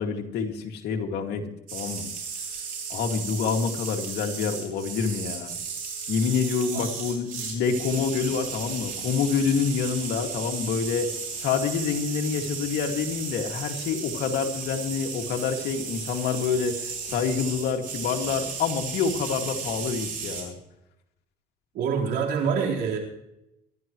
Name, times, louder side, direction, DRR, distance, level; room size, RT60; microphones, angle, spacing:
voice 1, 0.0-2.1 2.9-5.6 6.1-11.1 11.4-20.5, left 6 dB, 75° left, 3 dB, 2.3 m, -27 dB
sound 1, 1.7-20.4, right 6 dB, 55° right, 6.6 m, -35 dB
voice 2, 21.7-23.0, right 6 dB, 80° right, -1 dB, 4.2 m, -26 dB
25.0 x 12.5 x 3.1 m, 0.87 s
cardioid pair, 110°, 17 cm